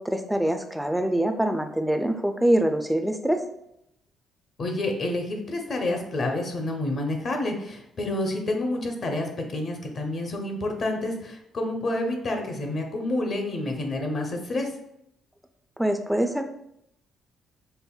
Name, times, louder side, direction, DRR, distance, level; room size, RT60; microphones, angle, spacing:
voice 1, 0.0-3.4 15.8-16.5, right 1 dB, 5° right, 6 dB, 0.3 m, -24 dB
voice 2, 4.6-14.7, left 2 dB, 50° left, 3 dB, 0.7 m, -29 dB
5.3 x 2.0 x 2.3 m, 0.78 s
cardioid pair, 90°, 0 cm